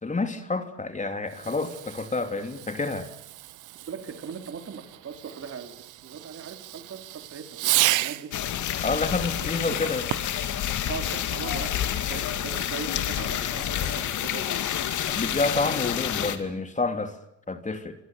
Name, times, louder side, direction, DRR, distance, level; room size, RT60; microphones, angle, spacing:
voice 1, 0.0-3.1 8.8-10.0 15.0-17.1 17.5-18.0, left 3 dB, 25° left, 3.0 m, -29 dB
Fireworks, 1.3-8.4 10.0-10.5, right 15 dB, 85° right, 1.0 m, -32 dB
voice 2, 3.8-5.8 6.0-8.3 9.4-10.0 10.9-14.6, right 6 dB, 50° right, 4.6 m, -39 dB
sound 1, 8.3-16.4, left 10 dB, 75° left, 2.6 m, -29 dB
27.5 x 24.5 x 7.0 m
cardioid pair, 90°, 30 cm